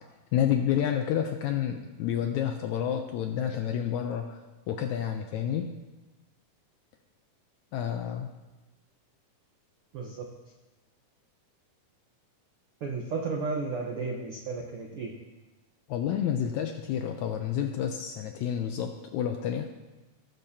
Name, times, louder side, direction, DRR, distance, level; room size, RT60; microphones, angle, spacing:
voice 1, 0.3-4.4 4.7-5.8 7.7-8.3 15.9-19.7, left 9 dB, 80° left, 5 dB, 1.7 m, -29 dB
voice 2, 9.9-10.2 12.8-15.1, right 4 dB, 75° right, 0 dB, 1.2 m, -33 dB
18.5 x 6.7 x 2.8 m, 1.1 s
omnidirectional pair, 3.8 m